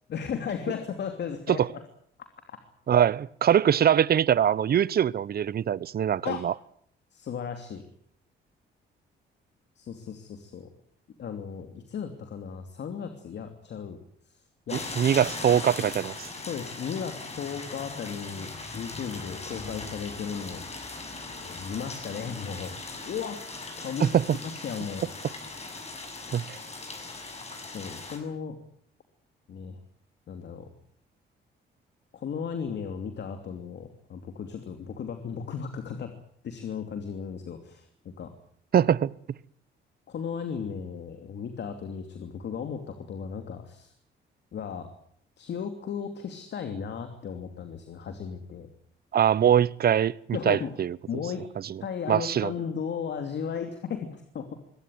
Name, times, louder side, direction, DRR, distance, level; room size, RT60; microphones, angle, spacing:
voice 1, 0.1-1.8 6.2-6.4 7.1-7.8 9.8-10.7 11.2-14.0 14.3-14.4 14.7-14.8 15.8-15.9 16.5-20.6 21.4-22.8 23.0-23.4 23.8-24.1 24.4-25.0 27.6-28.6 29.5-29.8 30.3-30.7 32.1-36.1 36.4-38.3 40.1-43.9 44.5-44.9 45.4-48.7 50.3-50.7 51.1-51.5 51.8-54.5, left 7 dB, 60° left, 2.8 m, -35 dB
voice 2, 2.9-6.5 14.7-16.3 24.0-24.2 26.3-26.6 38.7-39.1 49.1-51.0 51.6-51.8 52.1-52.5, right 9 dB, 50° right, 0.9 m, -23 dB
sound 1, 14.7-28.2, left 3 dB, 35° left, 7.0 m, -39 dB
23.0 x 17.0 x 9.4 m
cardioid pair, 90°, 20 cm